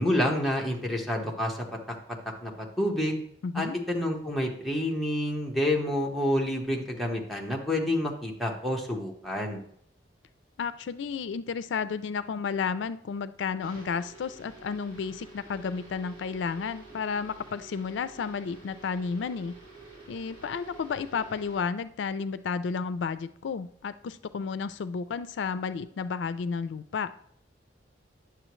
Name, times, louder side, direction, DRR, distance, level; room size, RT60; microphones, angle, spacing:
voice 1, 0.0-1.6 2.4-3.2 3.5-9.6, left 1 dB, ahead, -1 dB, 1.2 m, -28 dB
voice 2, 3.4-3.8 10.6-19.6 20.1-27.1, left 5 dB, 80° left, 13 dB, 0.4 m, -32 dB
sound 1, 13.6-21.6, right 3 dB, 30° right, 3.0 m, -49 dB
9.9 x 7.0 x 3.1 m, 0.65 s
head